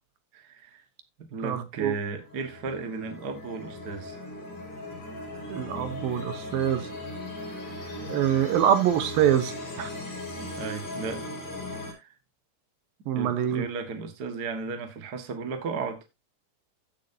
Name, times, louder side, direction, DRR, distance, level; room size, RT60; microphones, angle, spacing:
voice 1, 0.3-0.8 1.2-4.2 10.5-11.3 11.7-12.2 13.1-16.0, right 4 dB, 50° right, 1.1 m, -35 dB
voice 2, 1.4-1.9 5.5-6.9 8.0-9.5 9.8-9.9 13.1-13.6, right 10 dB, 70° right, 2.6 m, -25 dB
sound 1, 1.9-11.9, left 1 dB, 45° left, 6.1 m, -38 dB
14.5 x 7.2 x 2.8 m
omnidirectional pair, 4.6 m